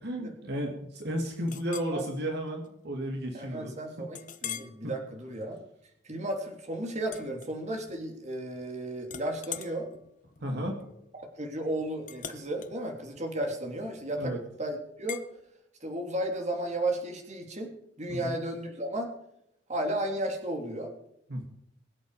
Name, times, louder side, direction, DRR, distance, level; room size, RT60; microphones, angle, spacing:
voice 1, 0.0-3.7 4.0-4.1 4.8-4.9 10.4-10.7 14.2-14.4 18.1-18.3 21.3-21.4, equal, 60° right, 1 dB, 2.4 m, -33 dB
Chink clink, 1.5-2.0 2.5-2.7 3.1-3.2 4.1-4.8 5.3-5.6 7.0-8.0 8.3-8.7 9.0-14.2 15.1-15.3, left 9 dB, 45° left, 1.0 m, -43 dB
voice 2, 3.3-5.6 6.0-9.9 11.2-14.3 14.6-15.2 15.8-17.7 18.0-19.1 19.7-20.9, right 1 dB, 40° right, 2 dB, 3.2 m, -34 dB
23.0 x 8.3 x 5.0 m, 0.77 s
head